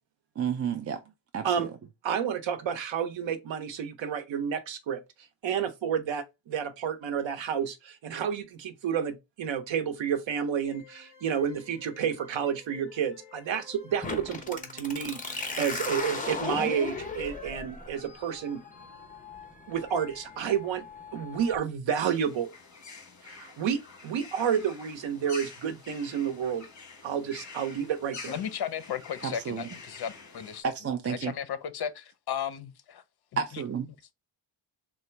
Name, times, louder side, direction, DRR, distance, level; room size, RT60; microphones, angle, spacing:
voice 1, 0.4-1.0 1.3-1.7 29.2-29.6 30.8-31.3 33.4-33.9, right 7 dB, 35° right, 0.4 m, -31 dB
voice 2, 2.0-5.0 5.4-18.6 19.7-20.8 21.1-22.5 23.2-26.7 27.0-28.3, right 8 dB, 80° right, 0.8 m, -30 dB
sound 1, 10.6-20.8, left 1 dB, 5° right, 2.1 m, -54 dB
sound 2, 14.0-21.5, left 3 dB, 20° left, 0.8 m, -37 dB
sound 3, 22.0-30.6, left 4 dB, 40° left, 1.3 m, -47 dB
voice 3, 28.3-30.1 31.1-33.0, left 8 dB, 55° left, 0.6 m, -34 dB
3.8 x 2.2 x 4.3 m
wide cardioid pair, 135°, 45 cm